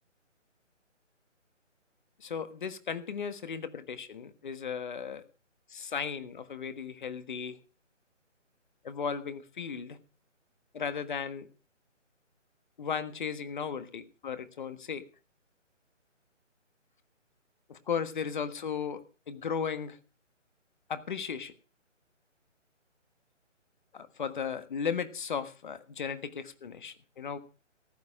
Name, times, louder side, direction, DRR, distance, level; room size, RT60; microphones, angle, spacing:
voice 1, 2.2-5.2 5.7-7.6 8.8-10.0 10.7-11.5 12.8-15.0 17.7-20.0 20.9-21.5 23.9-27.4, left 6 dB, 40° left, 12 dB, 1.5 m, -36 dB
15.0 x 11.5 x 5.0 m, 0.36 s
figure-of-eight pair, 155°, 38 cm